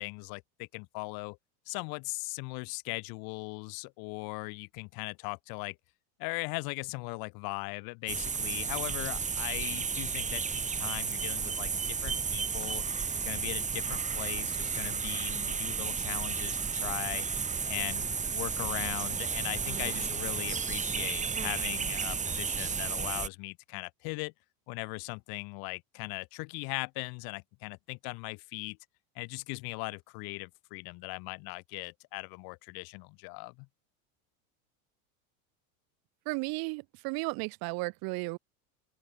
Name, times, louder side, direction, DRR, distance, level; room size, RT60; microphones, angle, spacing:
voice 1, 0.0-1.4 1.7-5.8 6.2-12.8 13.2-17.3 17.7-24.3 24.7-28.8 29.1-33.7, left 30 dB, 60° left, 1.4 m, -39 dB
sound 1, 8.1-23.3, right 6 dB, 15° right, 1.4 m, -33 dB
voice 2, 36.3-38.4, right 28 dB, 55° right, 1.1 m, -34 dB
open air
supercardioid pair, 110°, 42 cm